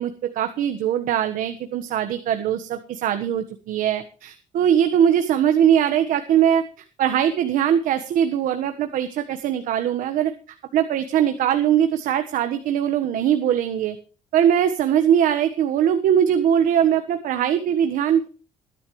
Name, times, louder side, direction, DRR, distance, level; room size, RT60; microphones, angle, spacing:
voice 1, 0.0-6.6 7.0-10.3 10.7-14.0 14.3-18.3, right 9 dB, 80° right, 7 dB, 1.4 m, -21 dB
21.0 x 11.5 x 3.2 m, 0.38 s
cardioid pair, 175°, 14 cm